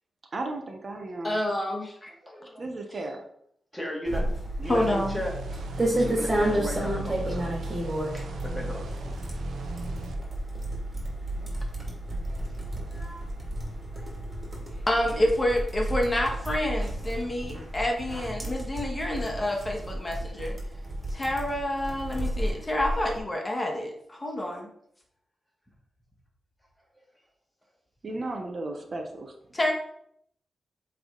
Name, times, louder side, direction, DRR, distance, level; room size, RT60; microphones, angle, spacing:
voice 1, 0.3-1.4 2.6-3.2 28.0-29.3, right 2 dB, 45° right, 3 dB, 0.9 m, -34 dB
voice 2, 1.2-2.1 4.7-5.2 14.9-20.6 21.1-24.7 29.5-29.7, left 1 dB, 25° left, 1 dB, 1.5 m, -28 dB
voice 3, 2.1-2.7 3.7-4.3 4.6-5.3 5.9-8.9 12.3-12.4 12.9-13.2 13.9-14.1, equal, 10° left, 0 dB, 1.9 m, -36 dB
sound 1, 4.1-23.2, right 1 dB, 30° right, 2.5 m, -32 dB
sound 2, 4.6-10.1, right 2 dB, 80° right, 0.8 m, -39 dB
7.8 x 3.5 x 3.9 m, 0.69 s
cardioid pair, 70°, 0 cm